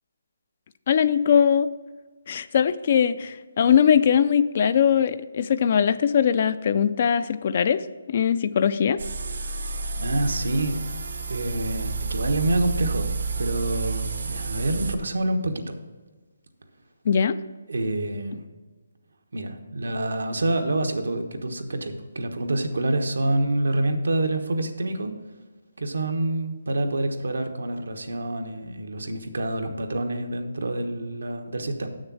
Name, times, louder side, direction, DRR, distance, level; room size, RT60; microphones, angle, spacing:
voice 1, 0.9-1.7 2.3-9.0 17.1-17.4, left 8 dB, 40° left, 14 dB, 0.3 m, -21 dB
sound 1, 9.0-15.0, right 4 dB, 70° right, 0.8 m, -30 dB
voice 2, 10.0-10.8 11.3-13.1 13.4-15.8 17.7-18.5 19.3-25.1 25.8-31.9, right 1 dB, 85° right, 5 dB, 1.1 m, -27 dB
7.0 x 6.5 x 6.1 m, 1.3 s
hypercardioid pair, 165°, 0 cm